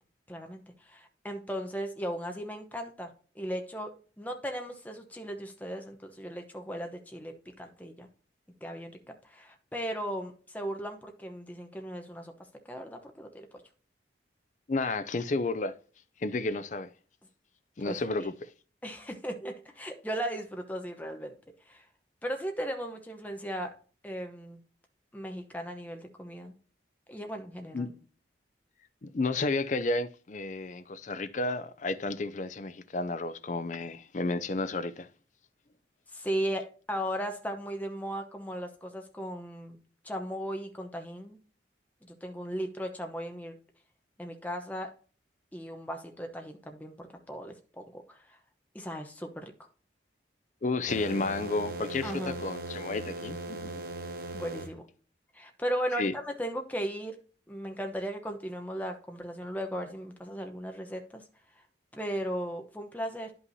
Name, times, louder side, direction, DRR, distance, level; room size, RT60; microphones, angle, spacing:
voice 1, 0.3-8.1 8.6-8.9 9.2-12.3 12.7-13.5 17.8-18.0 18.8-21.3 21.7-21.8 22.2-23.7 24.0-24.6 25.1-26.5 27.1-27.9 36.1-39.8 40.0-41.4 42.1-43.6 44.2-44.9 45.5-48.4 48.7-49.5 52.0-52.4 54.3-54.8 55.3-57.2 57.5-61.2 61.9-63.3, equal, 10° left, 0.9 m, -37 dB
voice 2, 14.7-15.7 16.2-16.9 17.8-18.5 27.7-27.9 29.0-35.1 50.6-53.8 56.0-56.1, left 3 dB, 40° left, 0.5 m, -32 dB
sound 1, 50.9-54.7, right 2 dB, 50° right, 0.8 m, -38 dB
11.0 x 5.5 x 2.8 m
head